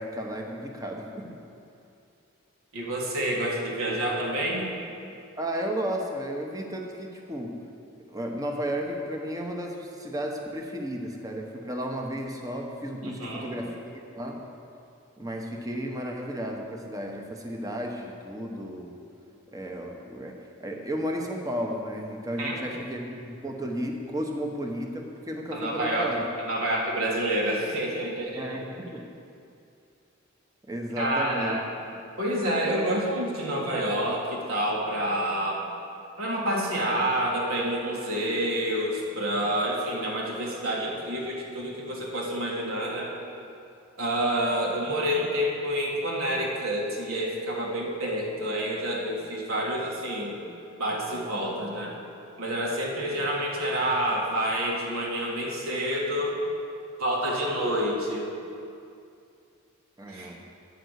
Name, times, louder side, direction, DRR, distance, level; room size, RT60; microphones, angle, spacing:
voice 1, 0.0-1.4 5.4-7.6 8.0-13.8 14.1-14.4 15.2-18.9 19.5-26.3 28.4-29.1 30.7-31.6 31.9-32.0 60.0-60.4, equal, 15° right, 1 dB, 0.9 m, -33 dB
voice 2, 2.7-4.7 13.0-13.5 22.4-22.6 25.5-28.6 31.0-31.6 32.2-35.6 36.2-43.1 44.0-50.3 50.8-52.0 52.4-56.4 57.0-58.3 60.1-60.3, right 1 dB, 85° right, -2 dB, 1.8 m, -28 dB
9.3 x 5.2 x 8.0 m, 2.5 s
head